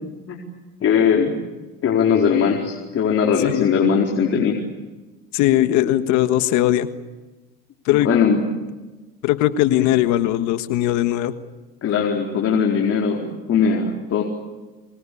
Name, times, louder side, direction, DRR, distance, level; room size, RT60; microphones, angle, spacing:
voice 1, 0.8-1.3 1.8-4.6 8.0-8.4 11.8-14.3, left 6 dB, 50° left, -1 dB, 4.5 m, -19 dB
voice 2, 5.3-6.9 7.8-8.1 9.2-11.3, left 13 dB, 70° left, 10 dB, 1.6 m, -19 dB
26.5 x 24.0 x 8.7 m, 1.2 s
supercardioid pair, 85°, 30 cm